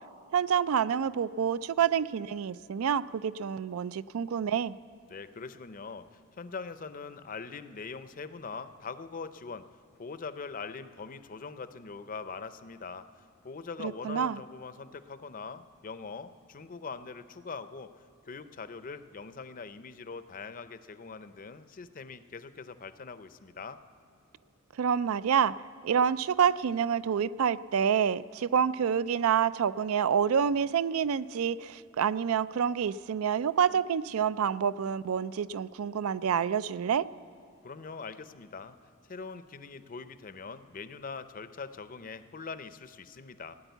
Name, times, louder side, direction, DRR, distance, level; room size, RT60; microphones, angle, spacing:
voice 1, 0.3-4.7 13.8-14.4 24.8-25.5 25.8-37.1, right 7 dB, 75° right, 17 dB, 0.4 m, -28 dB
voice 2, 5.1-9.7 10.0-13.1 13.4-17.9 18.3-23.8 37.6-38.7 39.1-43.5, left 4 dB, 40° left, 12 dB, 0.5 m, -42 dB
17.5 x 9.9 x 8.0 m, 2.8 s
head